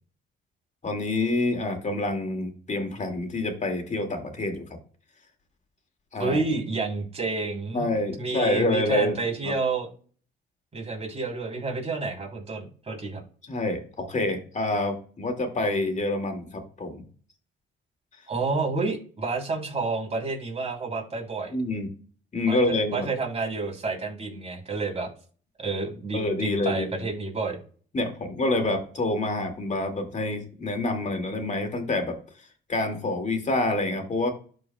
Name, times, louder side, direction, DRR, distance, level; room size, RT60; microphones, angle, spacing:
voice 1, 0.8-4.6 6.1-6.4 7.7-9.2 9.4-9.5 13.5-17.0 21.5-21.9 22.3-23.1 26.1-27.1 27.9-32.2 32.7-34.3, left 2 dB, 35° left, 5 dB, 2.1 m, -27 dB
voice 2, 6.2-7.9 8.2-9.9 10.7-13.2 18.3-21.5 22.5-25.1 25.6-27.6, right 3 dB, 30° right, 0 dB, 3.2 m, -29 dB
12.5 x 4.6 x 2.2 m, 0.42 s
cardioid pair, 90°, 20 cm